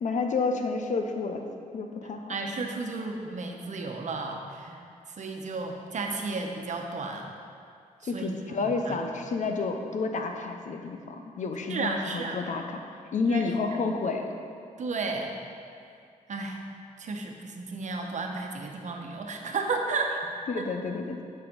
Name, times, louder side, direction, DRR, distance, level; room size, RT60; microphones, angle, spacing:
voice 1, 0.0-1.4 1.7-2.3 8.0-14.2 20.5-21.2, left 4 dB, 65° left, 4 dB, 0.8 m, -30 dB
voice 2, 2.3-4.8 5.1-7.3 8.0-9.0 11.7-12.4 13.2-13.5 14.8-15.4 16.3-16.6 17.0-20.2 20.6-20.7, right 3 dB, 60° right, 2 dB, 1.0 m, -33 dB
8.7 x 5.9 x 5.3 m, 2.3 s
cardioid pair, 100°, 14 cm